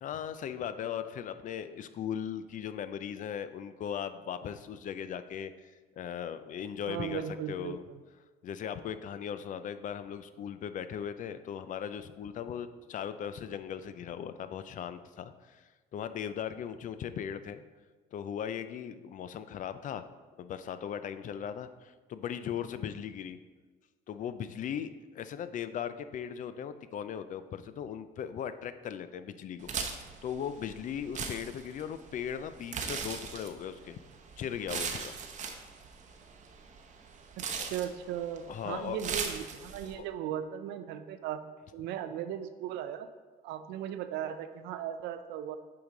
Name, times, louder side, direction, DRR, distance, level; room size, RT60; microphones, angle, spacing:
voice 1, 0.0-5.5 6.0-7.8 8.4-17.6 18.1-20.1 20.4-23.4 24.1-29.7 30.2-34.0 34.4-35.2 37.6-37.7 38.5-39.0 39.9-40.1, left 8 dB, 50° left, 12 dB, 0.5 m, -38 dB
voice 2, 6.9-8.0 37.4-41.4 41.7-43.1 43.4-45.6, right 10 dB, 90° right, 10 dB, 0.6 m, -37 dB
sound 1, 29.6-39.9, right 5 dB, 45° right, 0.8 m, -39 dB
8.5 x 4.8 x 3.8 m, 1.3 s
cardioid pair, 110°, 17 cm